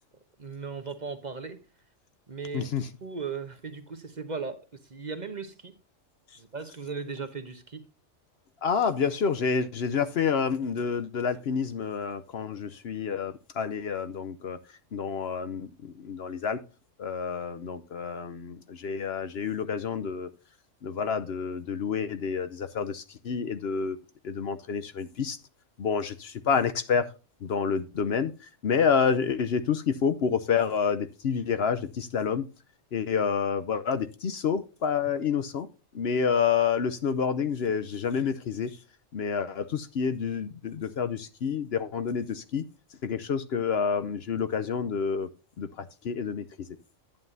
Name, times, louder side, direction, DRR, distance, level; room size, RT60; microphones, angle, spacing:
voice 1, 0.4-1.6 2.3-2.7 3.0-4.6 4.9-5.8 6.4-7.9, right 5 dB, 40° right, 1.0 m, -37 dB
voice 2, 2.5-2.9 8.6-14.6 14.9-16.6 17.0-20.3 20.8-24.0 24.2-25.4 25.8-27.1 27.4-28.3 28.6-32.4 32.9-35.7 35.9-38.8 39.1-42.6 43.0-45.3 45.6-46.7, left 6 dB, 60° left, 0.9 m, -28 dB
10.5 x 9.2 x 2.6 m
omnidirectional pair, 1.3 m